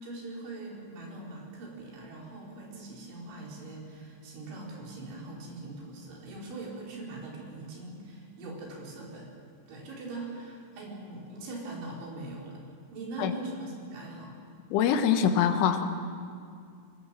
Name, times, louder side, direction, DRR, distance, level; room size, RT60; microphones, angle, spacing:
voice 1, 0.0-9.3 9.7-12.6 12.9-14.3, right 2 dB, 80° right, -2 dB, 6.5 m, -41 dB
voice 2, 14.7-15.8, left 8 dB, 85° left, 7 dB, 3.8 m, -24 dB
24.0 x 20.0 x 7.5 m, 2.3 s
omnidirectional pair, 5.3 m